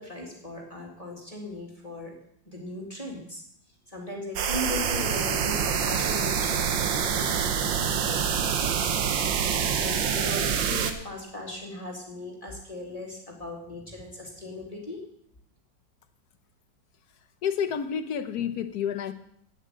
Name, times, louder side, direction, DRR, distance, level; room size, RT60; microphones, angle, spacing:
voice 1, 0.0-2.2 2.5-3.4 3.9-15.0, left 2 dB, 20° left, -1 dB, 2.2 m, -38 dB
sound 1, 4.4-10.9, right 7 dB, 90° right, 1.7 m, -26 dB
voice 2, 17.4-19.1, left 8 dB, 65° left, 10 dB, 1.3 m, -29 dB
8.7 x 7.9 x 9.1 m, 0.71 s
omnidirectional pair, 2.0 m